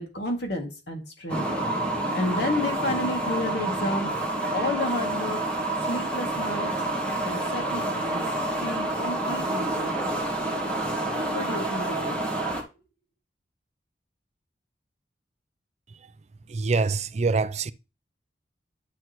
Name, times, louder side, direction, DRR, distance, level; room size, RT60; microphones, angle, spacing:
voice 1, 0.0-1.4 2.0-4.1 4.5-5.4 5.8-6.7 7.2-8.2 8.6-10.2 11.3-12.3, left 1 dB, 65° left, 2.3 m, -31 dB
sound 1, 1.3-12.6, right 2 dB, 5° left, 1.7 m, -28 dB
voice 2, 16.5-17.7, right 4 dB, 40° right, 0.4 m, -25 dB
10.0 x 5.8 x 3.0 m
head